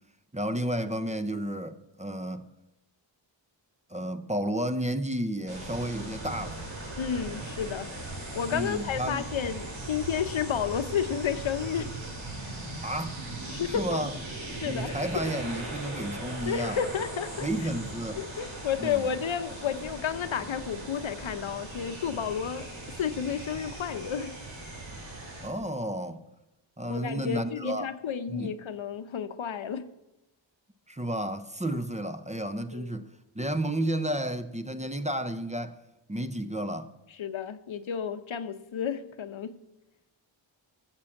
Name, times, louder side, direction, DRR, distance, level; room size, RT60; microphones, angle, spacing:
voice 1, 0.3-2.5 3.9-6.7 8.5-9.3 12.8-13.3 13.7-14.1 14.6-16.8 17.4-18.2 18.8-19.0 25.4-26.3 26.8-27.9 28.3-28.5 30.9-33.1 33.3-35.8 36.1-36.9, right 1 dB, 15° right, 0.6 m, -32 dB
sound 1, 5.5-25.5, right 2 dB, 85° right, 4.9 m, -39 dB
voice 2, 7.0-7.9 8.3-12.0 12.4-12.5 13.5-14.0 14.6-15.0 16.4-17.5 18.2-24.4 26.9-29.9 32.7-32.9 37.2-39.6, left 8 dB, 80° left, 0.9 m, -31 dB
14.5 x 7.5 x 7.1 m
wide cardioid pair, 115°, 46 cm